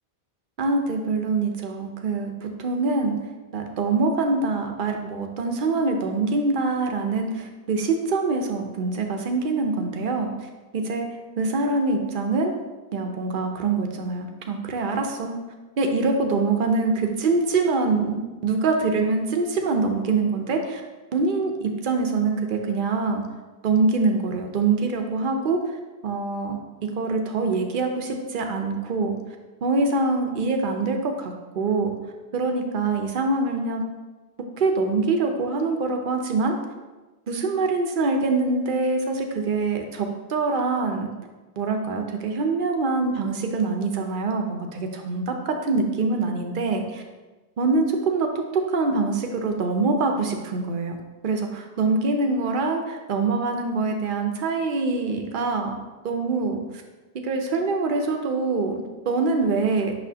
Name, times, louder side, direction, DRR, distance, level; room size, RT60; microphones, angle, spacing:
voice 1, 0.6-3.2 3.5-11.1 11.4-12.5 12.9-15.3 15.8-20.8 21.1-23.2 23.6-25.7 26.0-29.2 29.6-31.9 32.3-33.8 34.6-36.6 37.3-41.1 41.6-47.0 47.6-48.3 48.5-51.0 51.2-55.8 56.0-56.6 57.2-59.9, right 3 dB, 55° right, 3 dB, 0.8 m, -24 dB
6.1 x 6.0 x 2.8 m, 1.2 s
omnidirectional pair, 1.1 m